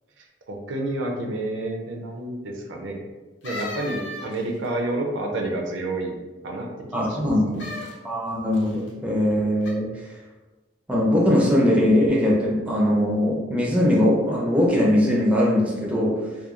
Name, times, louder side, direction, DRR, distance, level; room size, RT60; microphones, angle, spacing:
voice 1, 0.2-3.0 3.4-6.2 6.4-7.7, right 2 dB, 80° right, 2 dB, 0.4 m, -30 dB
sound 1, 3.4-4.7 7.5-7.9 8.5-8.9 9.6-9.7, left 1 dB, 80° left, 0.7 m, -35 dB
voice 2, 6.9-7.7 8.0-10.0 10.9-16.2, left 1 dB, 5° right, -3 dB, 0.4 m, -21 dB
2.9 x 2.2 x 2.4 m, 1.2 s
head